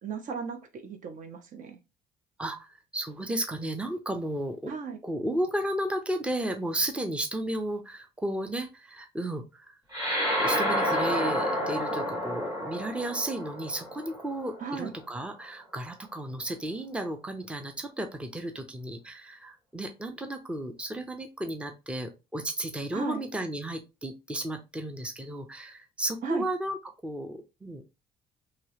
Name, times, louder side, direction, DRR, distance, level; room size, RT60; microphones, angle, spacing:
voice 1, 0.0-1.8 4.7-5.0 14.6-15.0 22.9-23.2 26.2-26.5, right 5 dB, 50° right, 0.6 m, -36 dB
voice 2, 2.4-4.7 5.0-9.7 10.4-26.8 27.0-27.9, right 1 dB, 5° right, 0.6 m, -33 dB
sound 1, 9.9-14.7, equal, 25° right, 1.9 m, -29 dB
2.9 x 2.8 x 2.9 m
cardioid pair, 110°, 17 cm